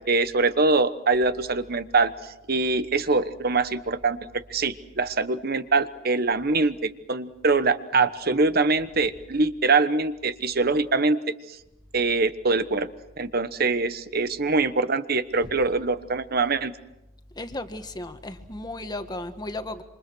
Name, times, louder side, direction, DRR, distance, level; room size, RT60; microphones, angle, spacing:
voice 1, 0.0-11.6 11.9-12.9 13.2-16.7, right 3 dB, 50° right, 12 dB, 1.2 m, -24 dB
voice 2, 17.3-19.8, left 2 dB, 20° left, 8 dB, 1.6 m, -35 dB
28.0 x 26.0 x 6.3 m, 0.89 s
head